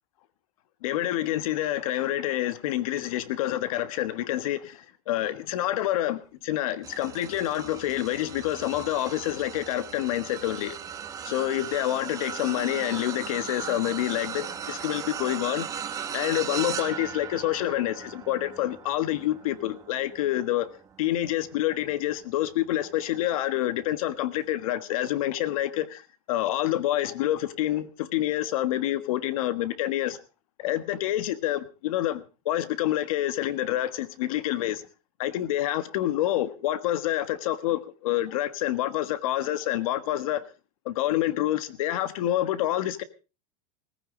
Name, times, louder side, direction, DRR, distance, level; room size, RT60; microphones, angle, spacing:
voice 1, 0.8-10.8 11.2-15.7 16.1-20.7 21.0-30.2 30.6-34.8 35.2-40.4 40.8-43.0, left 13 dB, 70° left, 1.4 m, -27 dB
sound 1, 6.8-22.3 22.9-23.1 24.4-24.5, right 8 dB, 20° right, 1.2 m, -38 dB
18.0 x 15.0 x 3.8 m
supercardioid pair, 155°, 19 cm